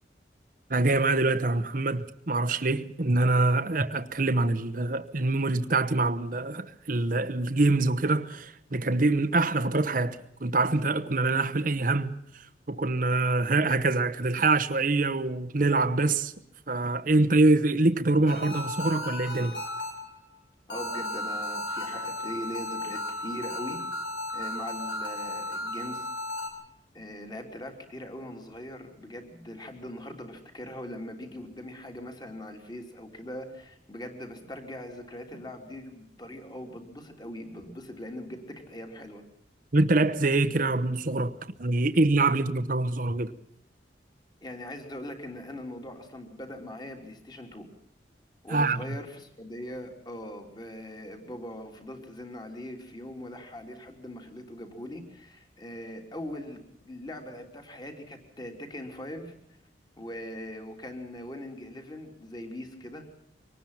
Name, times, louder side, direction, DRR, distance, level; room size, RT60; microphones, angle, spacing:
voice 1, 0.7-16.3 16.7-19.6 39.7-43.3 48.5-48.8, right 2 dB, 50° right, 1.0 m, -25 dB
sound 1, 18.3-20.3 20.7-26.5, left 1 dB, 80° left, 6.6 m, -35 dB
voice 2, 20.7-23.8 24.3-26.1 26.9-39.2 44.4-47.7 48.4-59.3 60.0-63.1, left 1 dB, 25° left, 3.3 m, -41 dB
24.5 x 19.0 x 5.8 m
head